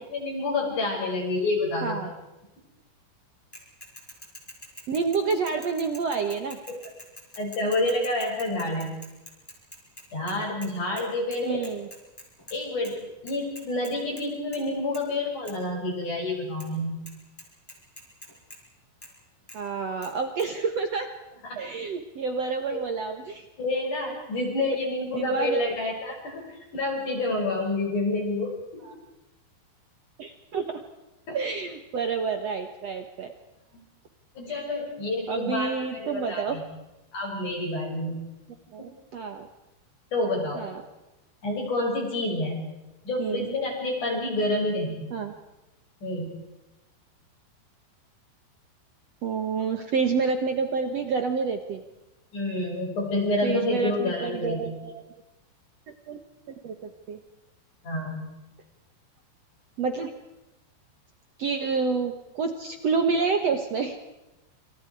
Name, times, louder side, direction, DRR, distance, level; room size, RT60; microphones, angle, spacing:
voice 1, 0.1-2.1 6.7-6.8 7.4-8.9 10.1-11.6 12.5-17.0 21.5-21.6 22.7-22.8 23.6-26.4 26.7-28.8 31.3-31.4 34.4-36.6 37.1-38.2 40.1-40.6 41.4-42.7 43.0-45.1 46.0-46.3 52.3-54.7 57.8-58.2, left 2 dB, 40° left, -1 dB, 7.9 m, -28 dB
Bicycle / Mechanisms, 3.5-10.7 11.0-11.1 11.3-12.6 12.8-12.9 13.3-14.2 14.5-14.7 14.9-15.0 15.5-15.6 16.6-16.7 17.1-17.2 17.4-18.6 19.0-19.1 19.5-19.6 20.0-20.1 20.4-20.5, equal, 5° left, 5.7 m, -45 dB
voice 2, 4.9-6.6 11.4-11.9 19.5-21.1 21.6-23.4 25.1-25.6 28.8-28.9 30.2-30.8 31.3-33.3 34.5-34.6 35.3-36.6 38.7-39.5 40.5-40.8 43.2-43.5 45.1-45.3 49.2-51.8 53.4-55.0 56.1-56.2 56.6-57.2 59.8-60.1 61.4-64.0, right 5 dB, 80° right, 6 dB, 1.4 m, -28 dB
28.0 x 27.5 x 4.8 m, 0.99 s
omnidirectional pair, 5.3 m